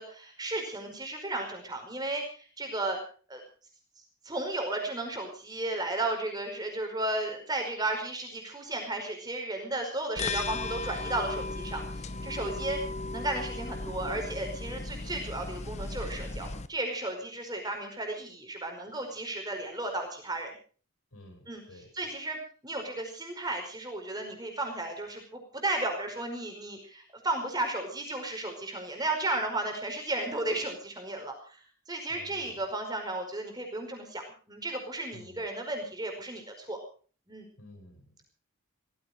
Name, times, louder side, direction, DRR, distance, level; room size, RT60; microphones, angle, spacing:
voice 1, 0.0-3.0 3.3-3.4 4.2-12.8 13.1-20.6 21.5-21.6 21.9-22.4 22.6-34.2 34.5-36.8 37.3-37.5, right 2 dB, 20° right, 4 dB, 5.1 m, -34 dB
sound 1, 10.2-16.7, left 3 dB, 30° left, 0.9 m, -36 dB
voice 2, 21.1-22.1 32.1-32.6 35.1-35.4 37.6-38.2, left 1 dB, 80° left, 4 dB, 7.8 m, -52 dB
17.5 x 15.5 x 5.1 m, 0.41 s
head